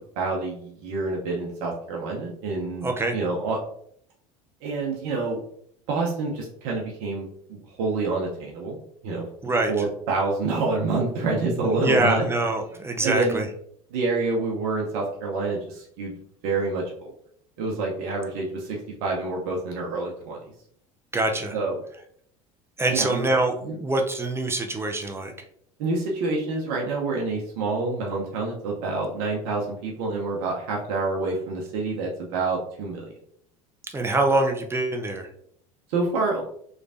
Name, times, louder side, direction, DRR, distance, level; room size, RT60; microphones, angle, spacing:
voice 1, 0.2-3.6 4.6-5.4 5.9-8.8 9.0-9.2 9.7-12.3 13.0-13.4 13.9-16.1 16.4-17.1 17.6-20.4 21.5-21.8 22.9-23.3 23.6-23.8 25.8-33.1 35.9-36.4, right 3 dB, 60° right, -2 dB, 0.8 m, -27 dB
voice 2, 2.8-3.1 9.4-9.7 11.8-13.5 21.1-21.6 22.8-25.3 33.9-35.3, right 2 dB, 15° right, 3 dB, 0.6 m, -24 dB
3.2 x 3.1 x 2.6 m, 0.66 s
hypercardioid pair, 75°, 18 cm